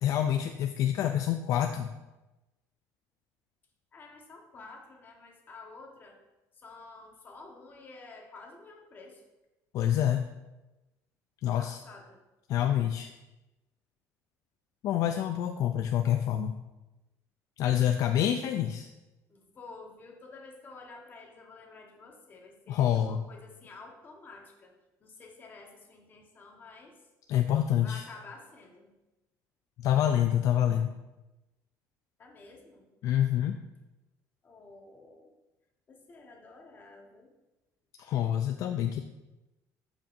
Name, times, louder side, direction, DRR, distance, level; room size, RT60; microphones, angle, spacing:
voice 1, 0.0-1.9 9.7-10.2 11.4-11.8 12.5-13.1 14.8-16.6 17.6-18.9 22.7-23.2 27.3-28.0 29.8-30.9 33.0-33.6 38.0-39.0, left 10 dB, 55° left, 6 dB, 0.4 m, -27 dB
voice 2, 3.9-6.2 6.5-9.2 11.6-12.2 19.3-24.7 25.0-27.1 27.8-28.9 32.2-32.9 34.4-35.3 35.9-37.3, left 3 dB, 30° left, 1 dB, 1.3 m, -50 dB
12.0 x 5.1 x 2.6 m, 1.0 s
cardioid pair, 155°, 7 cm